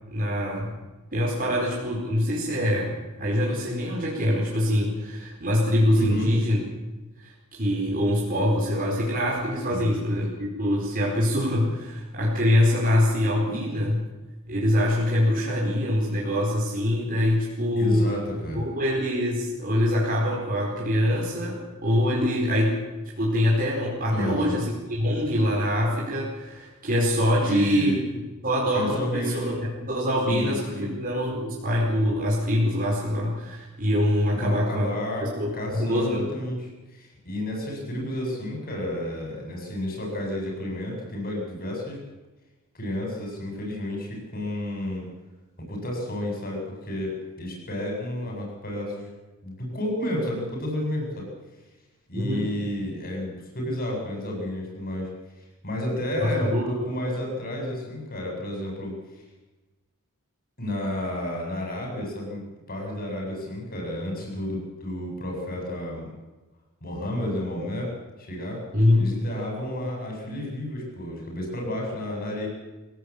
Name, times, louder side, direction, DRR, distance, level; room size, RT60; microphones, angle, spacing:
voice 1, 0.1-0.7 1.1-2.9 3.2-6.6 7.2-14.0 14.5-18.1 18.5-22.8 23.2-28.0 28.4-34.9 35.2-36.3 52.1-52.5 56.2-56.7 68.7-69.1, left 1 dB, 40° right, -4 dB, 4.8 m, -24 dB
voice 2, 5.9-6.3 9.7-9.9 17.8-18.7 24.1-24.5 27.4-28.0 28.7-29.5 30.3-30.9 34.3-42.0 42.7-45.0 45.7-47.1 47.4-49.1 49.4-51.3 52.1-55.1 55.6-59.2 60.6-62.4 62.7-66.1 66.8-67.9 68.2-68.6 69.0-72.5, left 1 dB, 40° left, 0 dB, 8.0 m, -31 dB
24.0 x 17.0 x 8.6 m, 1.1 s
head